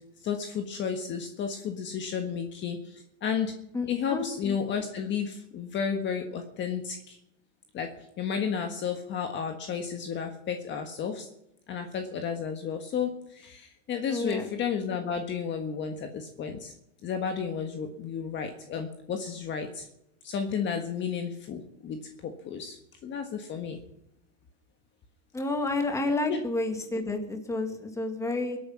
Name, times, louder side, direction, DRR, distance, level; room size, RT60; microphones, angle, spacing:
voice 1, 0.2-3.5 3.9-7.2 7.7-7.9 8.2-11.3 11.7-16.7 17.0-19.9 20.2-23.8 26.3-26.4, left 7 dB, 30° left, 5 dB, 1.6 m, -32 dB
voice 2, 3.7-4.2 14.1-14.5 25.3-28.6, left 2 dB, 10° left, 4 dB, 2.2 m, -30 dB
23.0 x 8.9 x 5.7 m, 0.83 s
supercardioid pair, 145°, 37 cm